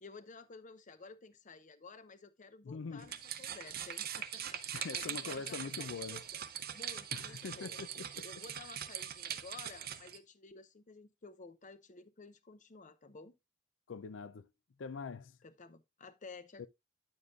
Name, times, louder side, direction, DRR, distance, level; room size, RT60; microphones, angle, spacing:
voice 1, 0.0-6.4 6.7-7.8 8.2-13.3 15.4-16.7, left 4 dB, 40° left, 0.7 m, -53 dB
voice 2, 2.6-3.1 4.7-6.2 7.1-8.3 13.9-14.5 14.8-15.4 16.6-16.7, left 5 dB, 80° left, 0.5 m, -43 dB
sound 1, 3.0-10.2, right 9 dB, 50° right, 0.6 m, -42 dB
9.7 x 7.2 x 2.4 m
head